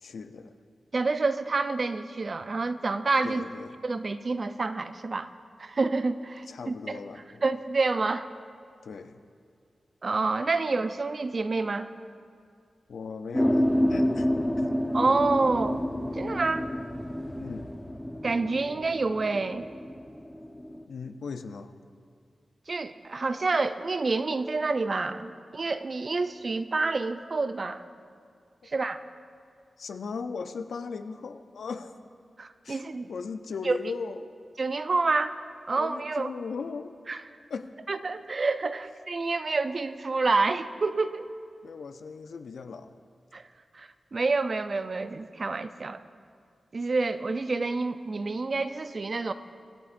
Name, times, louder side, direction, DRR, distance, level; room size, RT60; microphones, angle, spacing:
voice 1, 0.0-0.6 3.2-3.8 6.5-7.4 8.8-9.2 12.9-14.3 14.6-14.8 17.4-17.7 20.9-21.7 29.8-32.0 32.6-32.8 33.1-34.3 35.8-37.0 37.5-37.7 41.6-43.0, left 5 dB, 85° left, 9 dB, 0.5 m, -38 dB
voice 2, 0.9-3.4 3.8-5.3 5.6-7.0 7.4-8.3 10.0-11.9 14.9-15.8 16.1-16.7 18.2-19.7 22.7-27.8 28.6-29.0 32.4-33.1 33.6-33.8 34.6-35.4 35.7-36.3 37.1-37.2 37.9-41.3 43.3-43.4 43.7-46.0 46.7-49.3, right 3 dB, 50° right, 11 dB, 0.5 m, -28 dB
sound 1, 13.3-20.8, equal, 10° left, 0.8 m, -29 dB
23.5 x 8.5 x 2.5 m, 2.2 s
cardioid pair, 55°, 0 cm